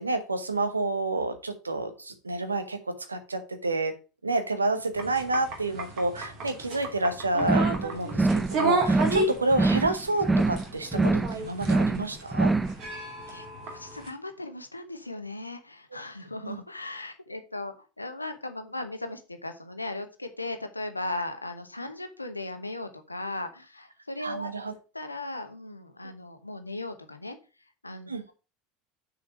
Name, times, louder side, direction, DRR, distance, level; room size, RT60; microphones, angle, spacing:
voice 1, 0.0-3.9 4.2-12.5 16.4-16.6 24.2-24.7 28.1-28.3, right 2 dB, 80° right, 9 dB, 1.0 m, -29 dB
sound 1, 4.9-14.1, right 2 dB, 45° right, 2.7 m, -33 dB
sound 2, 7.4-7.8 8.1-8.5 8.8-9.2 9.5-9.9 10.2-10.6 10.9-11.3 11.6-12.0 12.3-12.7, right 3 dB, 10° right, 0.5 m, -24 dB
voice 2, 13.3-24.5 24.9-27.4 27.8-28.1, left 2 dB, 85° left, 7 dB, 1.0 m, -37 dB
6.4 x 5.0 x 6.2 m, 0.33 s
figure-of-eight pair, 75°, 0 cm